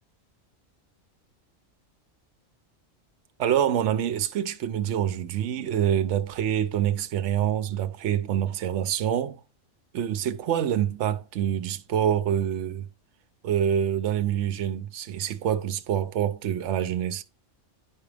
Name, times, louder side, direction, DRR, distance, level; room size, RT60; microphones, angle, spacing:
voice 1, 3.4-9.4 9.9-12.9 13.4-17.2, right 10 dB, 70° right, 0.9 m, -26 dB
10.5 x 4.9 x 3.3 m
omnidirectional pair, 1.3 m